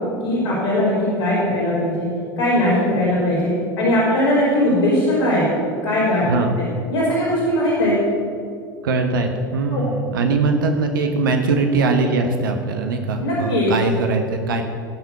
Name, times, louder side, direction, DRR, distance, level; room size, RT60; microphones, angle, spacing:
voice 1, 0.2-2.1 2.4-3.5 3.8-5.5 5.8-6.2 6.9-8.0 9.7-9.8 13.2-13.7, left 1 dB, 70° left, -10 dB, 3.8 m, -19 dB
voice 2, 8.8-14.6, right 3 dB, 65° right, 5 dB, 1.1 m, -21 dB
17.5 x 5.9 x 6.6 m, 2.4 s
figure-of-eight pair, 75°, 12 cm